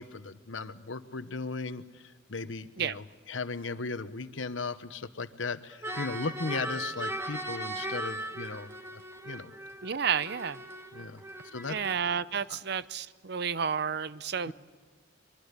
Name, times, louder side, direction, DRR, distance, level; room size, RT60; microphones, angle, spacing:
voice 1, 0.0-9.5 10.9-11.2 11.5-11.8 12.3-12.6 14.5-14.6, left 4 dB, 90° left, 1.1 m, -37 dB
sound 1, 5.7-11.9, right 1 dB, 15° right, 1.5 m, -38 dB
voice 2, 9.8-10.6 11.7-14.5, right 7 dB, 60° right, 0.7 m, -31 dB
24.0 x 22.5 x 8.3 m
head